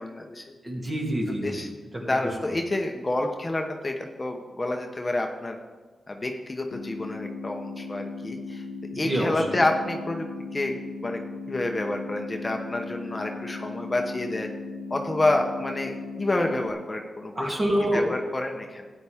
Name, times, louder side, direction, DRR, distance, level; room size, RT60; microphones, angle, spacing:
voice 1, 0.0-0.5 1.3-1.7 2.0-5.6 6.1-8.6 8.9-10.3 10.5-10.7 11.0-11.2 11.5-14.5 14.9-17.5 17.9-18.9, left 2 dB, 25° left, 3 dB, 0.9 m, -28 dB
voice 2, 0.6-1.6 9.0-9.6 17.4-18.1, right 1 dB, 30° right, -1 dB, 2.6 m, -26 dB
sound 1, 6.7-16.7, left 3 dB, 90° left, 0.6 m, -37 dB
13.0 x 9.2 x 3.6 m, 1.4 s
cardioid pair, 80°, 0 cm